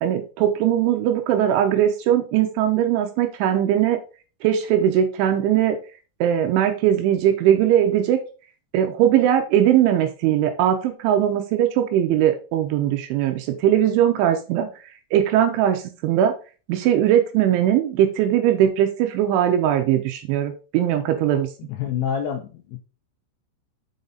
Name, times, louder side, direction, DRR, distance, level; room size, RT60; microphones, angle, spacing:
voice 1, 0.0-4.0 4.4-5.8 6.2-8.2 8.7-14.7 15.1-16.3 16.7-21.5, right 10 dB, 80° right, 6 dB, 2.9 m, -20 dB
voice 2, 21.7-22.8, left 8 dB, 85° left, 5 dB, 2.6 m, -27 dB
7.2 x 5.3 x 3.9 m, 0.34 s
omnidirectional pair, 5.9 m